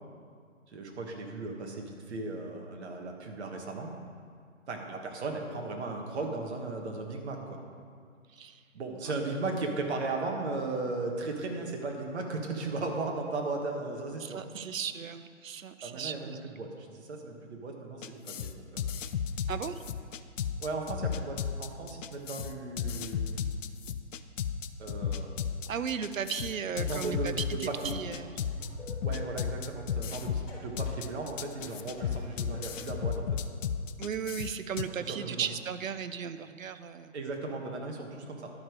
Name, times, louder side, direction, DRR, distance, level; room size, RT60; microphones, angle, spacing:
voice 1, 0.7-3.9 4.7-7.6 8.7-14.4 15.8-18.8 20.6-23.5 24.8-25.3 26.8-27.9 29.0-33.3 35.1-35.5 37.1-38.5, right 3 dB, 55° right, 1 dB, 1.5 m, -36 dB
voice 2, 8.3-8.6 9.0-9.1 14.2-16.4 19.5-19.8 25.7-28.3 34.0-37.1, right 7 dB, 90° right, 11 dB, 0.7 m, -36 dB
sound 1, 18.0-34.8, left 7 dB, 75° left, 0.6 m, -34 dB
sound 2, 27.7-32.9, left 2 dB, 25° left, 2.6 m, -47 dB
11.5 x 4.9 x 5.0 m, 2.1 s
hypercardioid pair, 155°, 39 cm